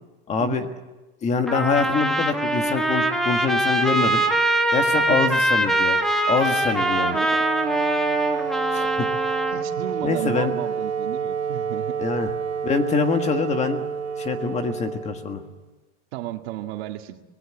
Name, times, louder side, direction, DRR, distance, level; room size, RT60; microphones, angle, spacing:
voice 1, 0.3-0.7 1.2-4.2 4.7-6.0 6.3-7.1 8.7-9.1 10.0-10.5 12.0-12.3 12.6-13.8 14.2-15.4, left 5 dB, 20° left, 7 dB, 1.6 m, -24 dB
Trumpet, 1.5-9.6, right 1 dB, ahead, 1.5 m, -22 dB
Wind instrument woodwind instrument, 6.3-15.6, right 6 dB, 25° right, 3.5 m, -29 dB
voice 2, 7.0-7.4 9.5-12.0 16.1-17.2, right 13 dB, 75° right, 5 dB, 2.0 m, -33 dB
25.0 x 19.5 x 8.9 m, 1.1 s
cardioid pair, 170°, 31 cm